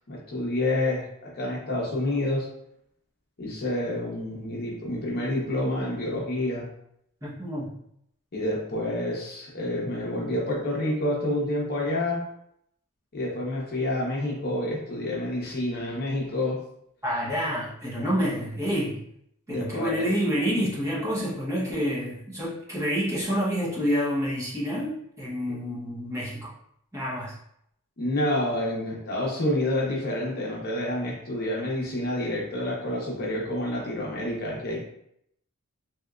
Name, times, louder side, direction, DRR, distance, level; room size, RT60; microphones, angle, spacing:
voice 1, 0.1-2.5 3.4-6.7 8.3-12.2 13.1-16.6 19.5-20.1 28.0-34.8, left 1 dB, 45° left, -2 dB, 0.8 m, -28 dB
voice 2, 7.2-7.7 17.0-19.0 19.5-26.5 26.9-27.4, equal, 15° right, -7 dB, 0.9 m, -28 dB
3.4 x 2.8 x 2.4 m, 0.74 s
head